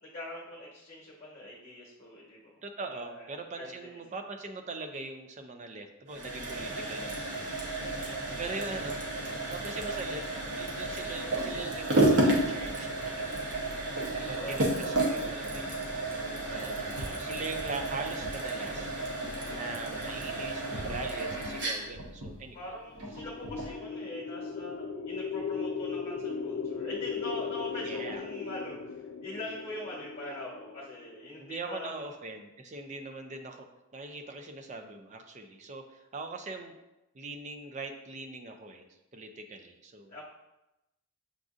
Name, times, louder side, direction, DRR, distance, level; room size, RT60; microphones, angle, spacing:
voice 1, 0.0-2.5 2.9-4.0 7.9-8.2 9.9-10.0 14.3-14.7 22.5-32.1 40.1-40.2, left 1 dB, 35° left, -5 dB, 1.0 m, -43 dB
voice 2, 2.6-7.7 8.1-10.3 10.5-13.5 14.1-22.6 27.8-28.3 31.4-33.7 33.9-36.7 37.1-40.1, right 3 dB, 35° right, 5 dB, 0.4 m, -41 dB
sound 1, 6.1-23.8, right 2 dB, 55° right, 0.9 m, -32 dB
sound 2, 23.0-31.1, left 5 dB, 85° left, 0.3 m, -37 dB
7.1 x 2.5 x 2.4 m, 0.95 s
head